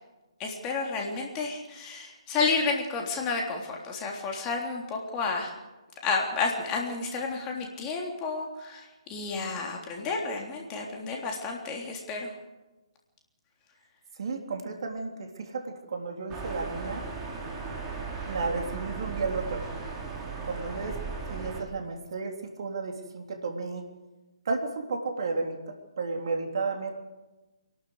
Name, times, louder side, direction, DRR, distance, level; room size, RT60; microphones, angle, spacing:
voice 1, 0.4-5.5 6.0-12.3, left 4 dB, 20° left, 0 dB, 3.5 m, -31 dB
voice 2, 14.2-17.1 18.3-19.7 20.4-21.0 21.3-23.8 24.5-26.9, right 3 dB, 55° right, 3 dB, 3.5 m, -33 dB
sound 1, 16.3-21.6, right 4 dB, 20° right, 4.0 m, -36 dB
27.0 x 12.0 x 8.1 m, 1.1 s
figure-of-eight pair, 140°, 3 cm